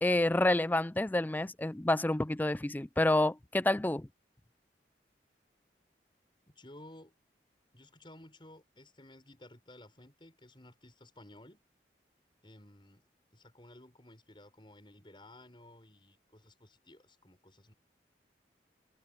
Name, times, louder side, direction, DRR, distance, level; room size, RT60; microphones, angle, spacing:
voice 1, 0.0-4.1, left 1 dB, 10° left, 0.4 m, -28 dB
voice 2, 6.5-7.1 7.7-11.6 12.4-13.0 13.3-17.7, left 1 dB, 30° left, 6.0 m, -55 dB
head